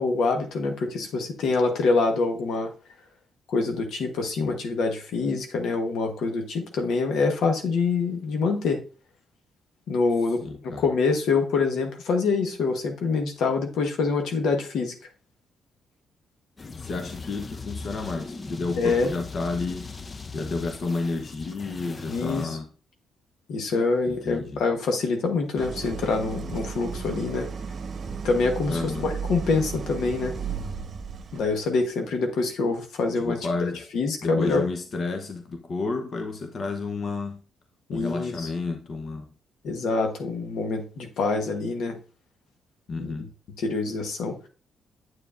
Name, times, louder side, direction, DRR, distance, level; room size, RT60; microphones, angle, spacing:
voice 1, 0.0-2.7 3.5-8.8 9.9-14.9 18.8-19.1 22.1-22.5 23.5-27.5 28.2-30.3 31.3-34.7 37.9-38.5 39.6-42.0 43.0-43.1 43.6-44.3, left 4 dB, 75° left, 1.2 m, -25 dB
voice 2, 10.4-10.8 16.8-19.9 20.3-22.7 24.1-24.6 28.7-29.1 33.2-33.8 34.2-37.4 37.9-39.3 42.9-43.3, left 3 dB, 50° left, 0.9 m, -31 dB
sound 1, 16.6-22.5, left 3 dB, 30° left, 0.5 m, -39 dB
Idling, 25.6-31.6, right 5 dB, 50° right, 0.9 m, -34 dB
8.2 x 7.1 x 2.5 m
cardioid pair, 90°, 0 cm